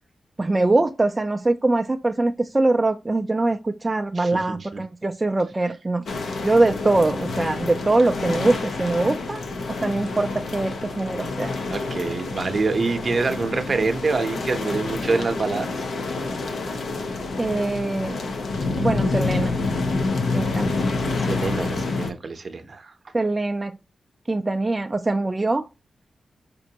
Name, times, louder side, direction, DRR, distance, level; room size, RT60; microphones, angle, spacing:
voice 1, 0.4-6.0 6.4-9.4 9.8-11.5 17.4-18.2 18.8-19.6 20.3-20.7 23.1-23.8 24.3-25.6, right 2 dB, 20° right, 0.3 m, -22 dB
voice 2, 4.2-4.8 11.7-15.7 21.2-22.9, right 4 dB, 45° right, 0.7 m, -26 dB
sound 1, 6.1-22.1, left 3 dB, 75° left, 0.8 m, -27 dB
5.2 x 2.5 x 2.8 m
wide cardioid pair, 95°, 0 cm